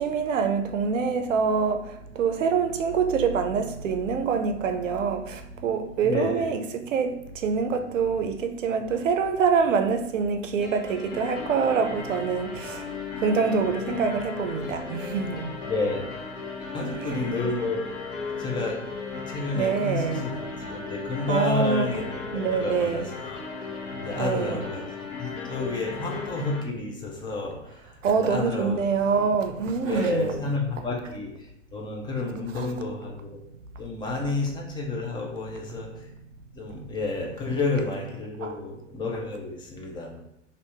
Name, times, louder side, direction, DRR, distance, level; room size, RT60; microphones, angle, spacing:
voice 1, 0.0-12.9 13.2-15.5 16.8-17.2 19.5-20.2 21.3-21.9 22.3-23.1 24.2-24.6 28.0-30.4 32.6-32.7 38.4-38.5, right 5 dB, 75° right, 7 dB, 0.6 m, -25 dB
voice 2, 6.0-6.5 8.9-9.0 15.7-16.1 16.7-17.9 18.4-18.8 19.2-23.4 24.0-24.8 25.2-28.8 29.2-29.3 29.8-33.4 33.8-36.1 36.5-40.1, left 3 dB, 10° left, 0 dB, 0.5 m, -30 dB
sound 1, 10.6-26.6, left 4 dB, 40° left, 1.1 m, -36 dB
2.7 x 2.7 x 3.3 m, 0.81 s
hypercardioid pair, 100°, 38 cm